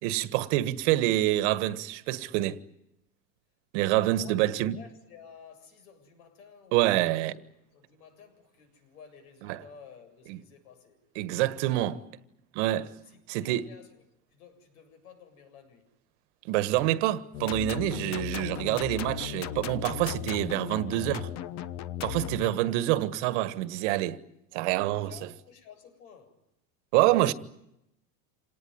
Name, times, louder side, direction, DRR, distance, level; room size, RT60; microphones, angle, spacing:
voice 1, 0.0-2.6 3.7-4.8 6.7-7.3 9.5-9.6 10.3-10.4 11.1-11.9 12.5-12.9 13.3-13.6 16.5-21.3 22.0-24.2 24.5-25.1 26.9-27.3, right 15 dB, 55° right, 1.5 m, -26 dB
voice 2, 4.1-7.2 7.7-11.0 11.6-12.0 13.0-14.0 14.3-15.9 20.4-21.2 24.7-26.4, left 6 dB, 80° left, 7.8 m, -52 dB
sound 1, 17.3-22.5, left 11 dB, 40° left, 1.2 m, -36 dB
27.0 x 19.0 x 9.7 m
supercardioid pair, 155°, 42 cm